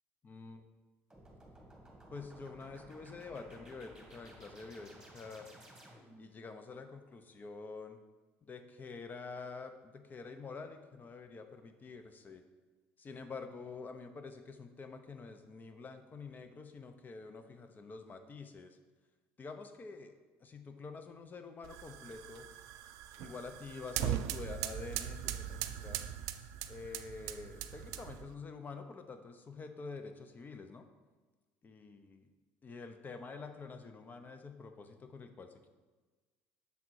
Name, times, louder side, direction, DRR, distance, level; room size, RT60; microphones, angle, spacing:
voice 1, 0.2-0.7 2.1-5.5 6.2-8.0 8.4-12.4 13.0-18.8 19.4-20.1 20.4-22.5 23.2-26.0 26.7-30.9 31.6-32.3 32.6-35.7, left 4 dB, 30° left, 8 dB, 0.6 m, -47 dB
sound 1, 1.1-6.3, right 1 dB, 10° right, 1.8 m, -56 dB
sound 2, 21.6-28.3, right 11 dB, 80° right, 0.3 m, -40 dB
6.9 x 3.6 x 4.6 m, 1.3 s
supercardioid pair, 95°, 6 cm